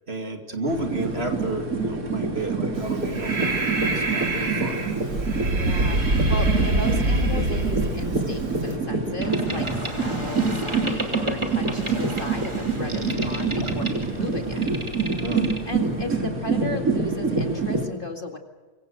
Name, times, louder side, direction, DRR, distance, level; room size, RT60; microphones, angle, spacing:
voice 1, 0.1-3.7 3.9-4.8 15.2-15.5, right 2 dB, 40° right, 4 dB, 2.8 m, -31 dB
sound 1, 0.7-17.9, right 3 dB, 65° right, 3.4 m, -27 dB
Breathing, 2.8-8.8, right 2 dB, 85° right, 3.7 m, -25 dB
voice 2, 4.4-5.0 5.3-14.7 15.6-18.4, left 2 dB, 35° left, 4 dB, 2.1 m, -35 dB
Boat Water vehicle, 9.2-16.1, right 1 dB, 20° right, 2.7 m, -32 dB
25.5 x 23.0 x 6.7 m, 1.3 s
omnidirectional pair, 1.6 m